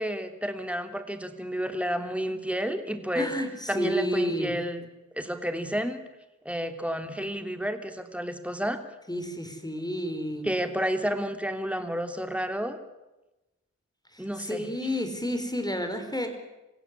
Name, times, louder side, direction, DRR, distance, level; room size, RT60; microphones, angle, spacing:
voice 1, 0.0-3.3 3.7-4.9 5.1-6.0 6.4-8.8 10.4-12.8 14.2-14.7, equal, 5° right, 7 dB, 3.1 m, -31 dB
voice 2, 3.1-4.5 9.1-10.5 14.1-16.4, equal, 15° left, 7 dB, 5.0 m, -30 dB
26.5 x 16.0 x 9.9 m, 1.0 s
cardioid pair, 45°, 30 cm